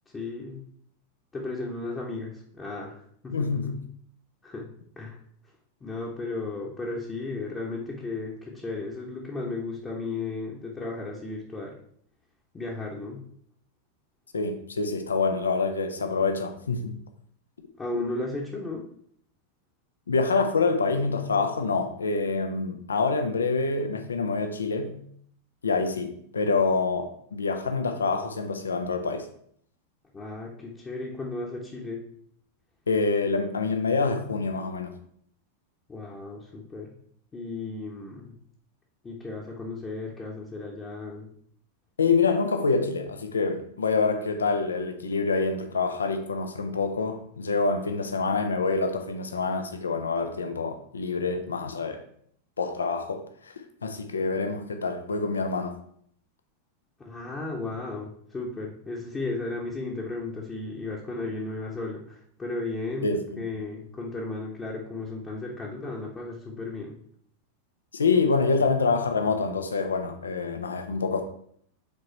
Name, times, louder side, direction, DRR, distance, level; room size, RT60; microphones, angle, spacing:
voice 1, 0.1-0.6 1.3-3.7 4.4-4.7 5.0-5.2 5.8-11.8 12.5-13.2 17.8-18.9 30.1-32.0 35.9-36.9 37.3-38.4 39.0-41.3 57.0-67.0, left 3 dB, 15° left, -3 dB, 1.0 m, -35 dB
voice 2, 3.3-3.7 14.3-16.9 20.1-25.0 25.6-29.3 32.9-34.9 42.0-52.0 52.6-53.5 53.8-55.7 63.0-63.4 67.9-71.2, left 4 dB, 70° left, 6 dB, 0.7 m, -26 dB
5.2 x 4.1 x 4.5 m, 0.65 s
figure-of-eight pair, 90°, 0 cm